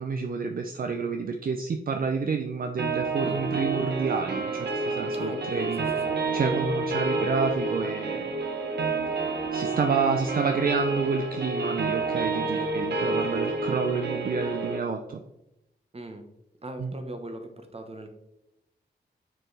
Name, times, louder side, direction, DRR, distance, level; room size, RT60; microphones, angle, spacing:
voice 1, 0.0-5.9 6.3-8.3 9.5-15.2 16.8-16.9, right 5 dB, 55° right, 5 dB, 0.6 m, -29 dB
sound 1, 2.8-14.8, right 3 dB, 70° right, 1.0 m, -29 dB
voice 2, 5.1-6.2 12.5-12.7 13.0-13.5 15.9-16.2 16.6-18.1, right 1 dB, 35° right, 6 dB, 1.1 m, -40 dB
6.0 x 4.6 x 3.3 m, 0.86 s
cardioid pair, 55°, 18 cm